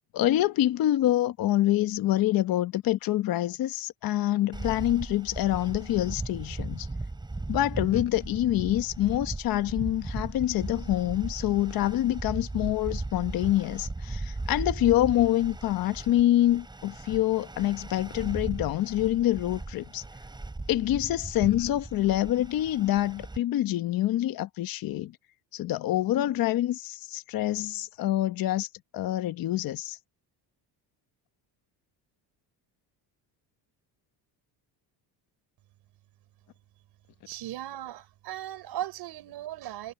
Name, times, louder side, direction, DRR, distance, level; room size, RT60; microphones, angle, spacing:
voice 1, 0.1-6.9 7.5-20.0 20.7-25.1 25.5-28.7 28.9-30.0, left 14 dB, 50° left, 1.1 m, -26 dB
sound 1, 4.5-23.4, right 2 dB, 10° right, 6.3 m, -37 dB
voice 2, 37.3-39.9, right 13 dB, 60° right, 4.8 m, -37 dB
cardioid pair, 175°, 44 cm